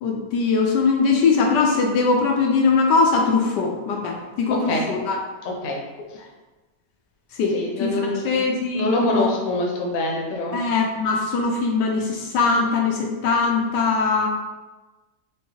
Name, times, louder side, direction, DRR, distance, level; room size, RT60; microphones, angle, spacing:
voice 1, 0.0-5.2 7.3-9.3 10.5-14.3, left 4 dB, 80° left, 0 dB, 1.2 m, -21 dB
voice 2, 5.4-5.8 6.1-6.2 7.5-8.2 8.7-10.6, left 2 dB, 60° left, -1 dB, 1.1 m, -25 dB
4.5 x 3.5 x 2.8 m, 1.2 s
omnidirectional pair, 1.9 m